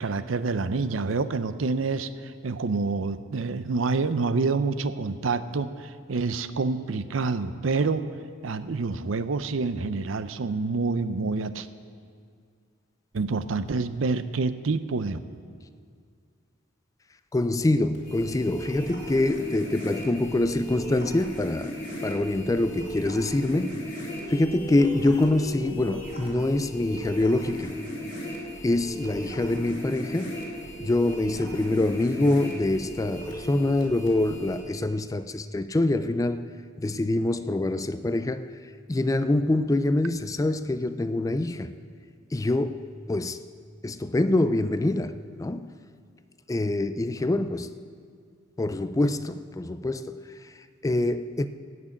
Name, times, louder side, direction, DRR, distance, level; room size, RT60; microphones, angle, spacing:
voice 1, 0.0-8.0 8.4-11.7 13.1-15.2, right 4 dB, 80° right, 0.6 m, -27 dB
voice 2, 17.3-21.7 22.0-27.7 28.2-28.4 28.6-30.5 30.8-36.5 36.8-38.5 38.9-41.7 42.3-43.4 43.8-45.8 46.5-47.7 48.6-51.5, left 2 dB, 15° left, 0.3 m, -25 dB
sound 1, 17.9-34.6, equal, 40° left, 4.0 m, -37 dB
16.5 x 6.1 x 9.0 m
head